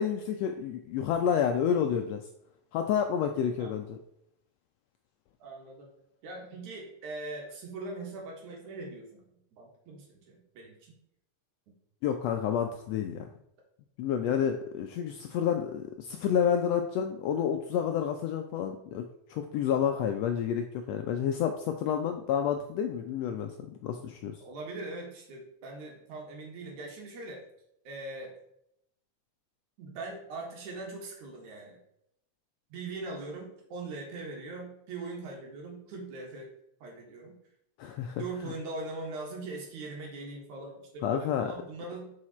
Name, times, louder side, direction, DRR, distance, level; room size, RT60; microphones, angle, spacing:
voice 1, 0.0-2.2 2.7-4.0 12.0-13.3 14.0-19.0 19.3-24.4 37.8-38.2 41.0-41.5, left 8 dB, 85° left, 5 dB, 1.4 m, -29 dB
voice 2, 5.4-5.9 6.2-9.2 9.6-10.9 14.2-14.4 24.4-27.4 27.8-28.3 29.8-31.8 32.7-36.5 36.8-37.4 38.2-42.1, right 3 dB, 75° right, 0 dB, 3.0 m, -41 dB
6.4 x 5.7 x 4.2 m, 0.77 s
omnidirectional pair, 3.5 m